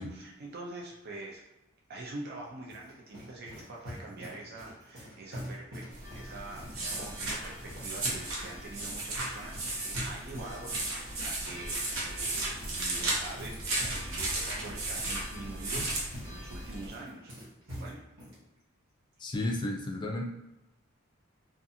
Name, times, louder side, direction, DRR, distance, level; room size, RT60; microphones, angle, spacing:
voice 1, 0.0-1.4 1.9-5.8 6.1-17.3 17.7-18.2, right 2 dB, 50° right, -2 dB, 0.4 m, -45 dB
sound 1, 2.4-18.4, equal, 70° right, 1.1 m, -46 dB
sound 2, 5.9-16.9, right 2 dB, 85° right, 0.8 m, -35 dB
sound 3, 6.0-16.8, left 1 dB, 15° right, 0.9 m, -53 dB
voice 2, 19.2-20.2, left 1 dB, 25° left, 2 dB, 0.3 m, -33 dB
2.5 x 2.4 x 2.6 m, 0.94 s
head